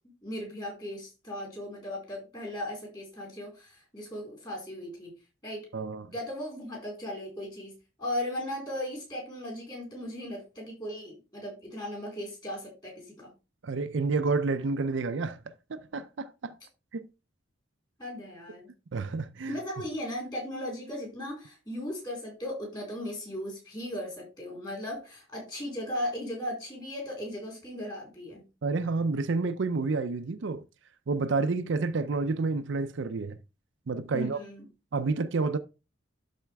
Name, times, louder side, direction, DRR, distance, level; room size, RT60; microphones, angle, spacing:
voice 1, 0.2-5.1 5.4-5.7 6.1-7.7 8.0-13.3 18.0-18.7 19.5-28.4 34.1-34.6, left 1 dB, 20° left, 4.2 m, -37 dB
voice 2, 5.7-6.1 13.6-16.5 16.9-17.1 18.9-19.6 28.6-30.6 31.1-33.4 33.9-34.4 34.9-35.6, right 4 dB, 60° right, 0.5 m, -29 dB
12.0 x 4.3 x 3.4 m
head